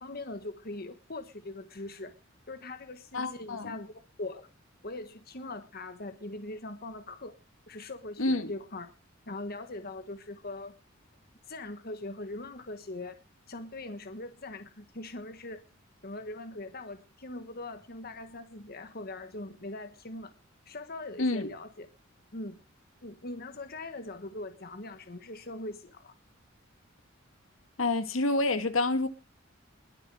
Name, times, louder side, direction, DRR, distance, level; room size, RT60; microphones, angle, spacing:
voice 1, 0.0-2.1 2.5-4.5 4.8-7.3 7.7-8.9 9.3-10.8 11.5-13.2 13.5-15.6 16.0-20.3 20.7-21.9 22.3-22.6 23.0-26.1, left 2 dB, 50° left, 1.4 m, -41 dB
voice 2, 3.1-3.8 8.2-8.5 21.2-21.5 27.8-29.1, left 2 dB, 80° left, 1.7 m, -28 dB
21.5 x 7.6 x 4.8 m
head